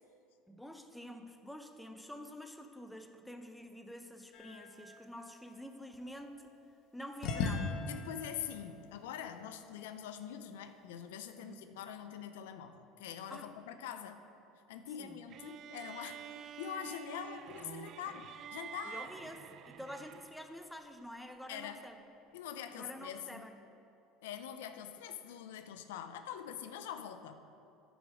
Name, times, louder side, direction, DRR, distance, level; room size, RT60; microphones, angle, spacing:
voice 1, 0.5-6.5 6.9-7.8 11.4-11.7 13.3-13.5 15.0-15.2 18.8-21.9 22.7-23.5, equal, 5° left, 6 dB, 0.7 m, -48 dB
sound 1, 4.3-6.5 7.2-10.1, left 4 dB, 60° left, 0.9 m, -41 dB
voice 2, 7.9-14.2 14.7-19.1 21.5-21.8 22.3-23.4 24.2-27.4, left 9 dB, 85° left, 9 dB, 0.4 m, -44 dB
sound 2, 15.3-20.6, right 9 dB, 50° right, 0.3 m, -49 dB
10.5 x 5.1 x 4.8 m, 2.7 s
supercardioid pair, 95°, 0 cm